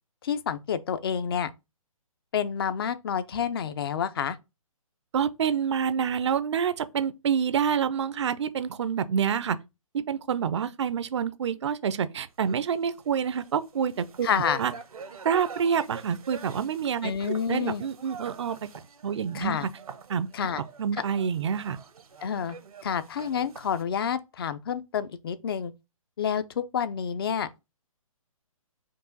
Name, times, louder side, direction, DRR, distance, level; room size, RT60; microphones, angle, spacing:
voice 1, 0.2-1.5 2.3-4.4 14.2-14.6 17.0-17.8 19.3-19.7 20.3-20.6 22.2-22.6 22.8-25.7 26.2-27.5, left 8 dB, 40° left, 0.4 m, -29 dB
voice 2, 5.1-9.6 9.9-14.3 14.6-14.7 15.2-18.7 19.0-19.6 20.1-20.3 20.8-21.8, right 7 dB, 50° right, 0.5 m, -27 dB
sound 1, 12.5-12.7 13.0-23.8, right 5 dB, 80° right, 0.8 m, -44 dB
4.6 x 2.5 x 3.9 m
hypercardioid pair, 150°, 18 cm